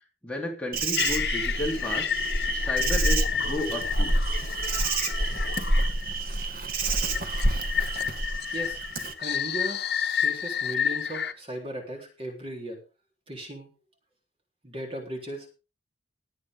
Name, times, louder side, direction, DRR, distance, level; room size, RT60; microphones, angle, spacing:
voice 1, 0.2-2.1 2.5-4.1, left 1 dB, 5° left, -1 dB, 3.4 m, -33 dB
Insect, 0.7-9.1, right 2 dB, 50° right, 1.6 m, -28 dB
sound 1, 1.0-6.2 7.1-11.3, left 8 dB, 60° left, 1.1 m, -30 dB
voice 2, 9.2-9.8 10.2-12.8 13.3-13.7 14.6-15.5, right 1 dB, 30° right, 1 dB, 3.7 m, -36 dB
20.0 x 8.6 x 3.7 m, 0.31 s
head